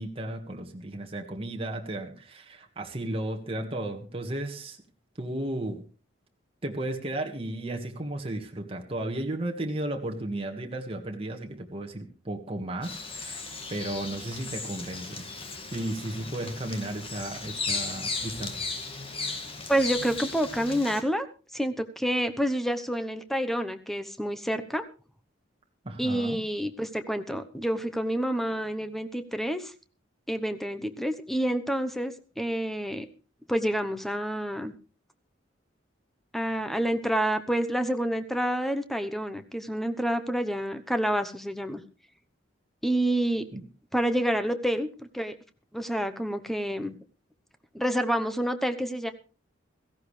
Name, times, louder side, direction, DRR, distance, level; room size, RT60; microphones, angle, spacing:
voice 1, 0.0-4.8 5.2-5.8 6.6-13.4 13.7-15.2 15.7-18.6 25.8-26.4 43.5-43.6, right 1 dB, 30° right, 2 dB, 1.7 m, -34 dB
Bird vocalization bird call bird song, 12.8-21.0, left 4 dB, 30° left, 2.0 m, -36 dB
voice 2, 19.7-21.3 21.5-24.8 26.0-29.7 30.3-33.1 33.5-34.7 36.3-41.8 42.8-43.4 43.9-44.9 45.1-45.4 45.7-47.0 47.7-49.1, right 1 dB, ahead, 9 dB, 1.0 m, -28 dB
17.0 x 15.0 x 3.3 m, 0.35 s
head